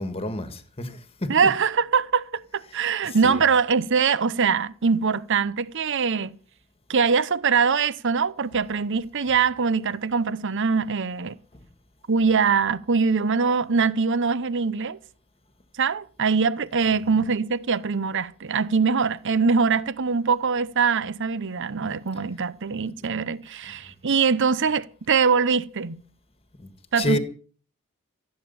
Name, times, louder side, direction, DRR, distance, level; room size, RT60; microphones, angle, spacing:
voice 1, 0.0-1.3 3.0-3.4 26.6-26.7 27.0-27.2, left 1 dB, 25° left, 1.6 m, -29 dB
voice 2, 1.3-6.3 6.9-11.4 12.1-15.0 15.8-26.0 26.9-27.2, right 5 dB, 55° right, 0.8 m, -23 dB
15.5 x 8.9 x 7.0 m
head